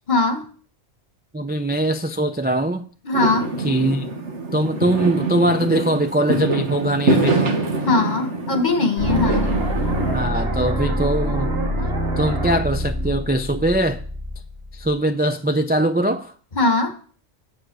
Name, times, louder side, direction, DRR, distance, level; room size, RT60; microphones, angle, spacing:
voice 1, 0.1-0.4 3.1-3.5 7.9-9.5 16.6-17.0, left 3 dB, 40° left, 1.7 m, -20 dB
voice 2, 1.3-2.9 3.6-4.1 4.5-7.6 10.1-11.6 12.2-14.0 14.7-16.3, right 1 dB, 15° right, 0.4 m, -21 dB
Fireworks, 3.1-10.2, right 2 dB, 90° right, 1.9 m, -24 dB
sound 1, 9.0-14.9, equal, 60° right, 2.7 m, -25 dB
9.5 x 7.8 x 6.2 m
omnidirectional pair, 1.2 m